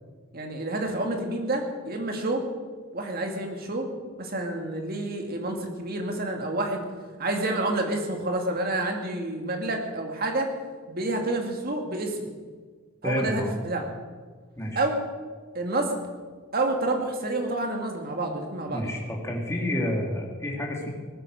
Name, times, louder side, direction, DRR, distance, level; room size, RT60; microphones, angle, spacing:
voice 1, 0.3-2.4 2.9-3.9 4.2-6.8 7.2-10.5 10.9-12.3 13.0-13.9 14.8-15.0 15.5-16.0 16.5-19.0, right 2 dB, 45° right, 2 dB, 2.3 m, -29 dB
voice 2, 13.0-13.5 14.6-14.8 18.7-20.9, left 1 dB, 15° left, -1 dB, 2.6 m, -29 dB
18.5 x 10.0 x 6.5 m, 1.5 s
head